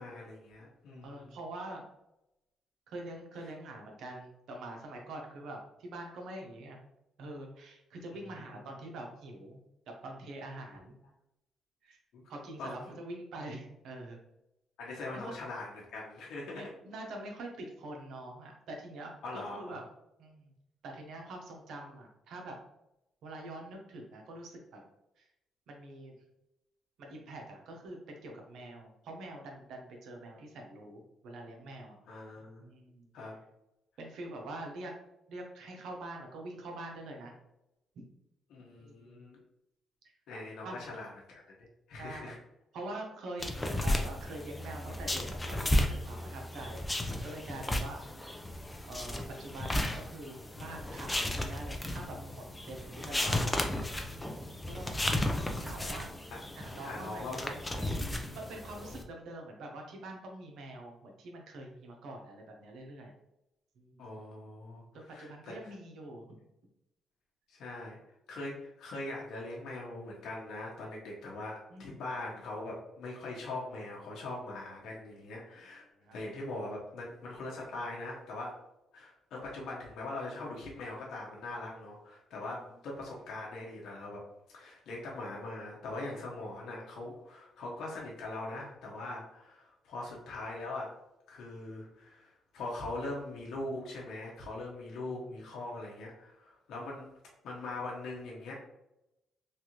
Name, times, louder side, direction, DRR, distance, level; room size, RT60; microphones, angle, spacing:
voice 1, 0.0-1.2 8.1-8.5 12.1-12.2 12.6-12.7 14.8-16.7 19.2-19.8 32.1-32.7 33.1-33.3 38.5-39.4 40.3-42.4 53.2-53.5 56.3-56.4 56.8-57.5 57.9-58.4 64.0-65.7 67.5-68.0 68.3-75.8 76.1-78.5 78.9-84.2 84.5-90.9 91.3-97.1 97.4-98.5, left 2 dB, 75° left, -3 dB, 0.7 m, -41 dB
voice 2, 1.0-1.9 2.9-6.8 7.2-11.0 11.8-12.0 12.3-14.2 15.1-15.4 16.5-19.8 20.2-20.5 20.8-22.6 23.2-24.8 25.2-25.3 25.7-26.1 27.0-32.0 32.6-33.1 34.0-34.9 35.3-37.3 37.9-38.0 38.8-39.2 40.6-40.8 42.0-42.4 42.7-48.4 48.8-53.5 54.1-54.9 55.6-56.2 56.6-63.1 63.8-64.1 64.9-66.4 71.7-72.0 76.0-76.2 82.5-82.6 95.0-95.3, right 2 dB, 75° right, 2 dB, 0.7 m, -45 dB
sound 1, 43.4-59.0, left 1 dB, 15° left, 0.5 m, -34 dB
3.2 x 2.4 x 2.9 m, 0.89 s
cardioid pair, 90°, 0 cm